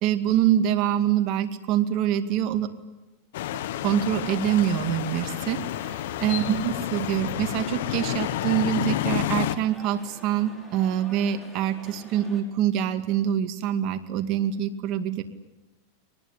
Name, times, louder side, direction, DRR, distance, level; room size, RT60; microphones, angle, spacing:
voice 1, 0.0-2.7 3.8-15.2, right 10 dB, 45° right, 8 dB, 2.3 m, -25 dB
sound 1, 3.3-9.6, left 13 dB, 70° left, 1.2 m, -30 dB
sound 2, 5.1-12.4, equal, 5° left, 6.1 m, -47 dB
23.5 x 20.0 x 9.9 m, 1.1 s
supercardioid pair, 130°, 0 cm